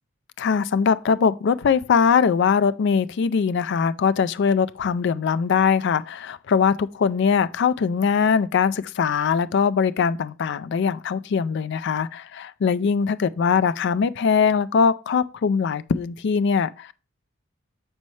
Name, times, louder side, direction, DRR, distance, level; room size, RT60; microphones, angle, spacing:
voice 1, 0.4-16.9, left 6 dB, 60° left, 0.4 m, -21 dB
6.5 x 5.3 x 3.1 m
head